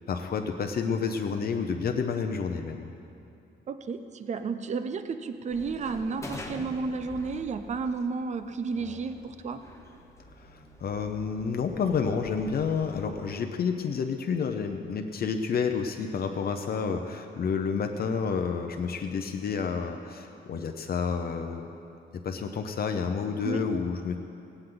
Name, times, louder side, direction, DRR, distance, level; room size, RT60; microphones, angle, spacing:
voice 1, 0.1-2.9 10.4-21.7 22.1-24.1, left 5 dB, 50° left, 5 dB, 0.8 m, -30 dB
voice 2, 3.7-9.6 23.4-23.6, right 4 dB, 35° right, 10 dB, 0.6 m, -32 dB
sound 1, 5.5-13.1, left 1 dB, 15° left, 1.1 m, -46 dB
18.0 x 17.0 x 3.9 m, 2.6 s
wide cardioid pair, 175°, 20 cm